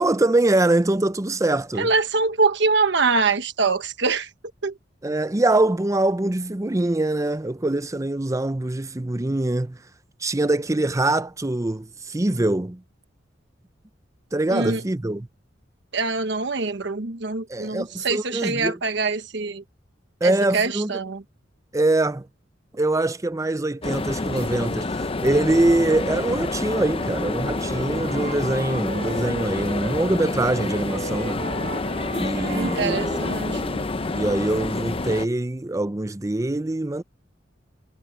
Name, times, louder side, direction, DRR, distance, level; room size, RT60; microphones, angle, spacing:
voice 1, 0.0-1.9 5.0-9.8 10.2-12.8 14.3-15.3 17.5-18.8 20.2-21.0 21.7-22.3 22.7-31.4 32.1-33.3 34.1-37.0, right 2 dB, 15° right, 0.6 m, -23 dB
voice 2, 1.8-4.3 4.6-4.7 14.5-14.8 15.9-19.6 20.2-21.2 32.4-33.6, right 4 dB, 65° right, 1.2 m, -24 dB
sound 1, 23.8-35.3, left 3 dB, 30° left, 0.7 m, -28 dB
Wind instrument woodwind instrument, 26.5-30.1 30.4-34.4, right 3 dB, 40° right, 2.1 m, -37 dB
head